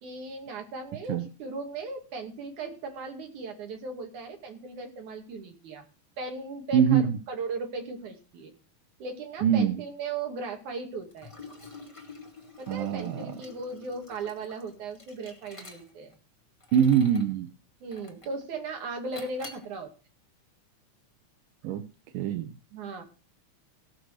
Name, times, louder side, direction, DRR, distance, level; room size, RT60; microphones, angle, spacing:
voice 1, 0.0-5.9 6.2-7.0 7.3-8.5 9.0-11.3 12.6-16.1 17.8-19.9 22.7-23.0, right 3 dB, 70° right, 4 dB, 3.7 m, -37 dB
voice 2, 6.7-7.2 9.4-9.8 12.7-13.3 16.7-17.5 21.6-21.8 22.1-22.5, right 8 dB, 90° right, 9 dB, 2.5 m, -23 dB
Liquid, 11.1-16.1 16.6-17.3 17.9-18.4 19.1-19.7, left 3 dB, 10° left, 1.6 m, -47 dB
16.5 x 6.1 x 6.5 m, 0.34 s
omnidirectional pair, 3.6 m